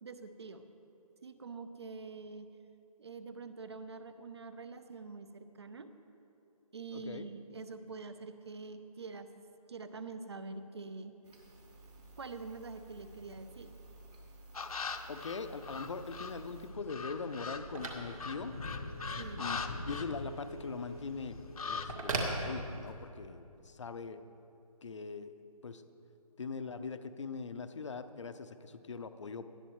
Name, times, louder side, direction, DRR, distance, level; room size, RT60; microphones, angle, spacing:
voice 1, 0.0-0.6 1.2-2.5 3.0-5.9 6.7-9.3 9.7-11.2 12.2-13.7 19.2-19.5, right 4 dB, 45° right, 10 dB, 0.7 m, -45 dB
voice 2, 6.9-7.2 15.1-18.6 19.4-19.6 19.9-21.4 21.6-24.2 24.8-25.3 25.6-25.8 26.4-29.5, left 4 dB, 50° left, 10 dB, 0.7 m, -41 dB
sound 1, 11.2-16.7, right 2 dB, 90° right, 3.2 m, -54 dB
sound 2, 14.5-16.4 16.9-20.7 21.0-21.9, left 4 dB, 70° left, 1.0 m, -41 dB
Telephone, 15.4-23.2, right 2 dB, 65° right, 2.2 m, -43 dB
19.0 x 12.0 x 3.1 m, 2.7 s
hypercardioid pair, 175°, 19 cm